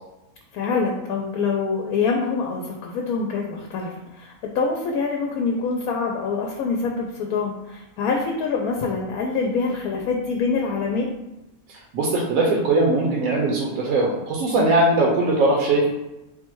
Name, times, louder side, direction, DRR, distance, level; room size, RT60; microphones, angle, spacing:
voice 1, 0.5-11.1, left 4 dB, 80° left, 1 dB, 1.1 m, -25 dB
voice 2, 11.9-15.9, right 2 dB, 75° right, -2 dB, 1.1 m, -20 dB
3.9 x 2.2 x 4.5 m, 0.97 s
omnidirectional pair, 1.6 m